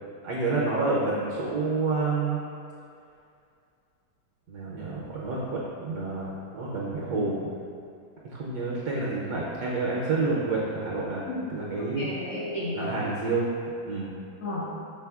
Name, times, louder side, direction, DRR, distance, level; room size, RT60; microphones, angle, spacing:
voice 1, 0.2-2.4 4.5-7.5 8.2-11.2 11.5-12.1 12.7-13.5 13.9-14.1, right 3 dB, 70° right, -6 dB, 1.0 m, -29 dB
voice 2, 11.3-13.1 14.4-14.8, left 1 dB, 70° left, -7 dB, 1.6 m, -33 dB
6.0 x 3.6 x 2.3 m, 2.4 s
omnidirectional pair, 2.1 m